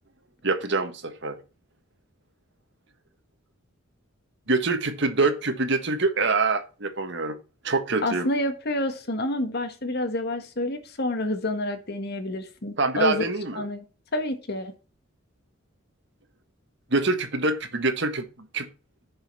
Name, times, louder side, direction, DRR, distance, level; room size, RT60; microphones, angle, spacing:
voice 1, 0.4-1.4 4.5-7.3 7.6-8.3 12.8-13.6 16.9-18.2 18.5-18.7, right 3 dB, 60° right, 1.6 m, -25 dB
voice 2, 8.0-13.3 13.5-13.8 14.1-14.7, left 2 dB, 55° left, 1.7 m, -28 dB
10.5 x 5.6 x 5.4 m
head